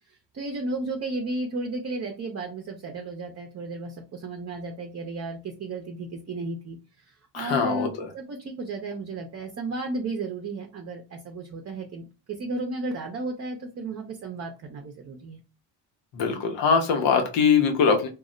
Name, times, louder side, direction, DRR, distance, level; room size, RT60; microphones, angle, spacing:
voice 1, 0.1-6.8 7.1-12.1 12.4-15.4, right 2 dB, 35° right, 3 dB, 0.7 m, -34 dB
voice 2, 7.3-8.1 16.1-18.1, left 6 dB, 80° left, 4 dB, 0.9 m, -22 dB
2.3 x 2.0 x 3.7 m, 0.32 s
cardioid pair, 80°, 43 cm